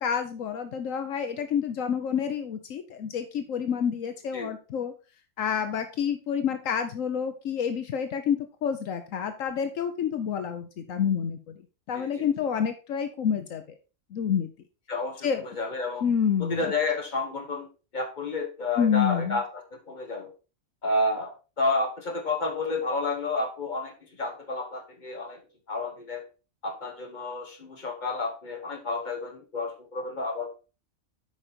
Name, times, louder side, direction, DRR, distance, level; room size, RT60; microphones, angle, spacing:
voice 1, 0.0-4.9 5.4-11.6 11.9-13.6 14.1-14.5 15.2-15.4 16.0-16.6 18.8-19.4, left 7 dB, 80° left, 8 dB, 1.2 m, -28 dB
voice 2, 11.9-12.3 14.9-16.0 16.5-17.7 17.9-20.3 20.8-25.4 25.7-26.2 26.6-30.5, left 3 dB, 35° left, 3 dB, 1.9 m, -30 dB
8.8 x 5.1 x 4.4 m, 0.33 s
omnidirectional pair, 1.3 m